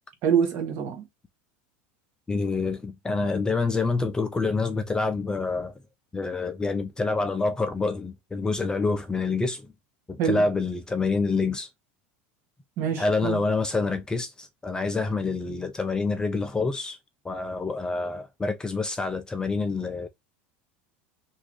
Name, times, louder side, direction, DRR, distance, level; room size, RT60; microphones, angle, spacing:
voice 1, 0.2-1.0 10.2-10.4 12.8-13.4, right 7 dB, 50° right, 1.4 m, -25 dB
voice 2, 2.3-5.7 6.1-9.7 10.1-11.7 13.0-17.0 17.2-20.1, left 3 dB, 15° left, 0.4 m, -27 dB
3.0 x 2.6 x 3.0 m
supercardioid pair, 115°, 6 cm